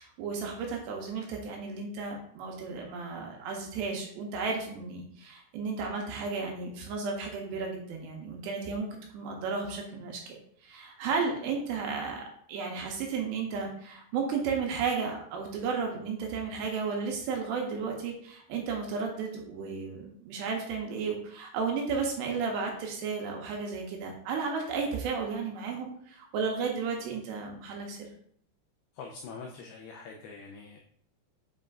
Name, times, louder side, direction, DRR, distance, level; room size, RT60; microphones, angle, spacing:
voice 1, 0.0-8.9 9.1-10.4 10.6-12.2 12.5-28.1, right 5 dB, 80° right, 1 dB, 2.7 m, -33 dB
voice 2, 29.0-30.8, left 4 dB, 90° left, 1 dB, 2.3 m, -44 dB
7.8 x 5.5 x 2.5 m, 0.63 s
omnidirectional pair, 5.4 m